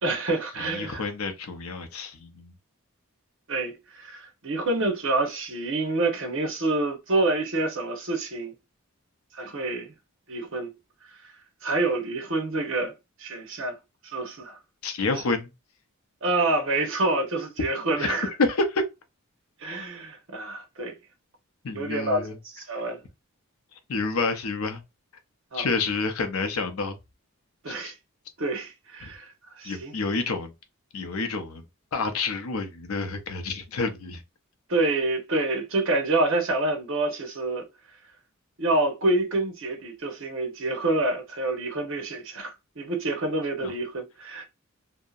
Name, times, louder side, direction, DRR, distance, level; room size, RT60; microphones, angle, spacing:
voice 1, 0.0-1.1 3.5-8.5 9.3-9.9 10.3-10.7 11.1-11.3 11.6-12.9 13.2-13.7 14.0-14.6 16.2-18.3 19.6-20.9 21.7-23.0 25.5-25.7 27.6-27.9 28.4-29.9 34.7-37.7 38.6-44.4, right 2 dB, 60° right, 0.8 m, -27 dB
voice 2, 0.6-2.5 14.8-15.5 18.0-18.8 21.6-22.4 23.9-24.8 25.5-27.0 27.7-27.9 29.0-29.1 29.6-30.5 30.9-31.6 31.9-34.2 43.6-43.7, left 3 dB, 75° left, 0.5 m, -29 dB
2.6 x 2.0 x 2.3 m
head